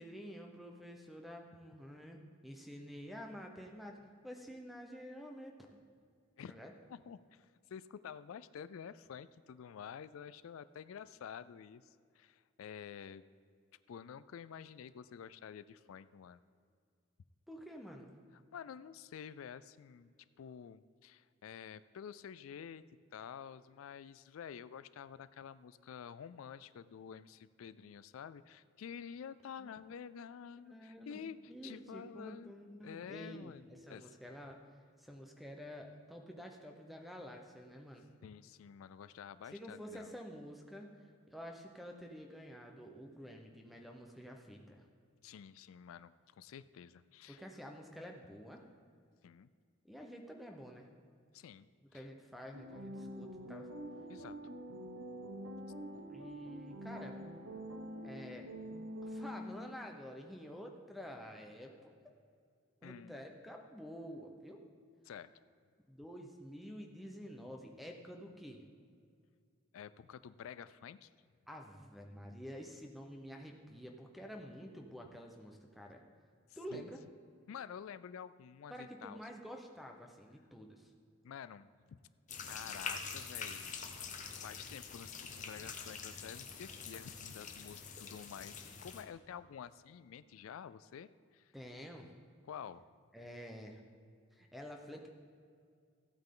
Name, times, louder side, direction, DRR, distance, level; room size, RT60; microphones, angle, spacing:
voice 1, 0.0-4.0 4.2-5.5 6.5-6.7 17.5-18.1 29.6-29.7 30.7-31.2 31.5-34.6 35.0-38.0 39.5-44.8 47.3-48.6 49.8-50.9 51.9-53.7 56.1-57.2 58.0-58.5 59.0-61.9 62.8-64.6 65.9-68.6 71.5-76.0 76.6-77.0 78.7-80.9 91.5-92.1 93.1-93.8 94.3-95.1, equal, ahead, 3 dB, 0.8 m, -49 dB
voice 2, 6.9-13.2 13.9-16.4 18.5-20.1 20.4-22.8 23.1-32.6 32.8-34.1 38.2-40.1 45.2-47.4 49.2-49.5 51.3-51.7 51.9-52.1 54.1-54.4 62.8-63.3 65.1-65.3 69.7-71.1 76.7-76.9 77.5-79.2 81.2-82.0 82.4-83.7 84.3-91.5 92.4-92.8, left 7 dB, 85° left, 15 dB, 0.3 m, -49 dB
sound 1, 52.5-59.8, equal, 85° right, 1.1 m, -46 dB
sound 2, 82.3-89.0, left 5 dB, 35° left, 0.9 m, -45 dB
15.0 x 8.8 x 3.8 m, 2.2 s
head